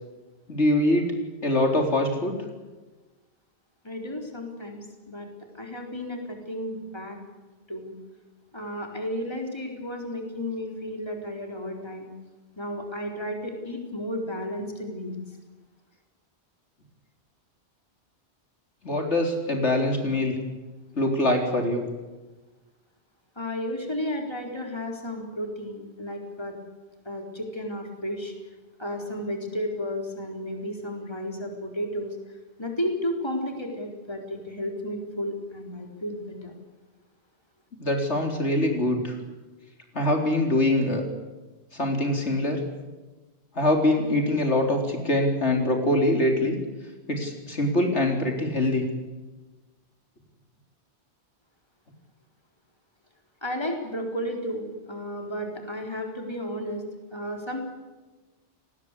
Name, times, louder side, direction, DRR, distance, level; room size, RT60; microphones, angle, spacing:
voice 1, 0.5-1.1 1.4-2.4 18.8-20.3 21.0-21.8 37.8-39.2 39.9-41.0 41.7-42.6 43.6-46.6 47.1-48.8, left 1 dB, 80° left, 3 dB, 4.1 m, -23 dB
voice 2, 3.8-5.3 5.6-7.2 7.7-7.9 8.5-12.1 12.6-15.2 23.4-26.6 27.1-28.3 28.8-32.1 32.6-36.5 53.4-56.8 57.1-57.6, equal, 25° left, 2 dB, 4.3 m, -33 dB
30.0 x 20.0 x 8.4 m, 1.2 s
omnidirectional pair, 1.2 m